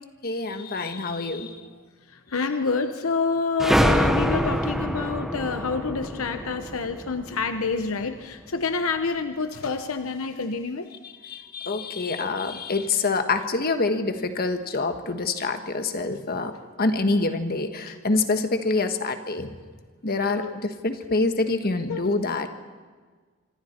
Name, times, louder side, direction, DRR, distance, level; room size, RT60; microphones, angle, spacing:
voice 1, 0.2-1.6 11.0-16.5 16.8-19.5 20.0-22.5, left 3 dB, 45° left, 7 dB, 1.4 m, -26 dB
voice 2, 2.3-10.9 17.9-18.0 20.3-20.5 21.9-22.0 22.3-22.5, left 4 dB, 75° left, 8 dB, 0.9 m, -28 dB
sound 1, 3.6-8.1, equal, ahead, 0.9 m, -25 dB
26.0 x 25.0 x 4.4 m, 1.5 s
head